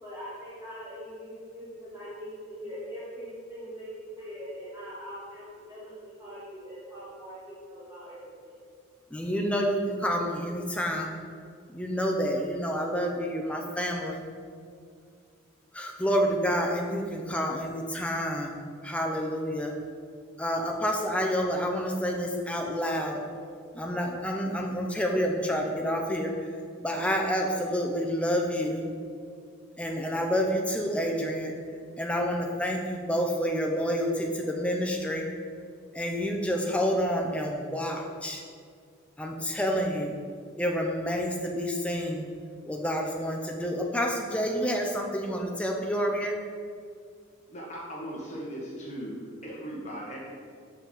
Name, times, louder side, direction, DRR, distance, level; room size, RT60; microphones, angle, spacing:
voice 1, 0.0-8.6, equal, 15° right, -10 dB, 1.2 m, -42 dB
voice 2, 9.1-11.1 11.7-14.2 15.7-19.7 20.4-23.2 23.7-26.3 26.8-28.8 29.8-31.5 32.0-35.3 35.9-38.4 39.2-40.1 40.6-42.3 42.7-46.4, equal, 5° left, 1 dB, 0.5 m, -28 dB
voice 3, 47.5-49.2 49.4-50.2, equal, 35° left, -4 dB, 1.3 m, -38 dB
6.2 x 4.6 x 4.0 m, 2.2 s
head